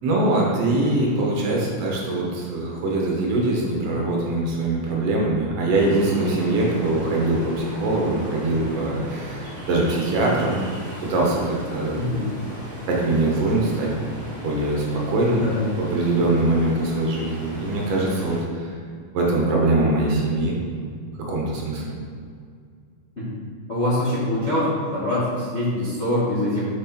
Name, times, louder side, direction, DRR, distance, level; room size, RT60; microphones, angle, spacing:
voice 1, 0.0-10.6 11.0-12.0 12.9-13.9 14.4-15.5 15.8-18.7 19.1-20.6 21.2-21.8, right 2 dB, 60° right, -3 dB, 1.7 m, -22 dB
Ocean, 5.7-18.4, equal, 85° right, 0.4 m, -37 dB
voice 2, 11.9-12.3 15.3-15.6 23.2-23.3 23.7-26.7, left 1 dB, 55° left, -9 dB, 0.7 m, -24 dB
6.1 x 6.1 x 4.3 m, 2.2 s
omnidirectional pair, 4.0 m